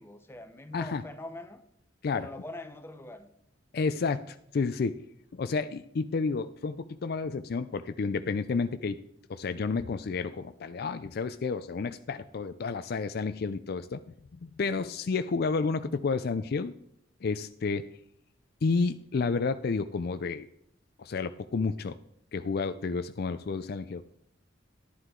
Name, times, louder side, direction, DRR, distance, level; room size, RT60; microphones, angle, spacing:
voice 1, 0.0-1.6 2.1-3.3, left 2 dB, 15° left, 0.9 m, -43 dB
voice 2, 3.7-5.0 5.3-9.0 9.3-14.0 14.3-16.7 17.2-17.9 18.6-20.5 21.0-21.9 22.3-24.0, left 4 dB, 55° left, 0.4 m, -31 dB
11.5 x 11.0 x 3.8 m
head